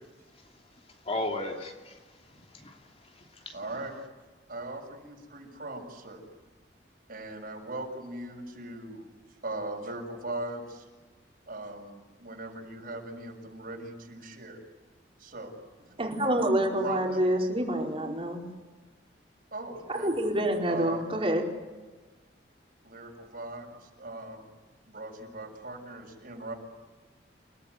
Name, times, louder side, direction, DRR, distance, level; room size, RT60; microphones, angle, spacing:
voice 1, 0.3-3.6, left 2 dB, 35° left, 2 dB, 3.0 m, -38 dB
voice 2, 3.5-3.9 4.5-6.2 7.1-9.1 9.4-10.9 11.5-14.6 15.2-15.5 16.8-17.2 19.5-20.1 20.7-21.2 22.8-24.4 24.9-26.5, right 2 dB, 55° right, 2 dB, 6.6 m, -39 dB
voice 3, 16.0-18.4 19.9-21.4, right 1 dB, 30° right, 0 dB, 4.9 m, -27 dB
30.0 x 18.5 x 9.7 m, 1.3 s
head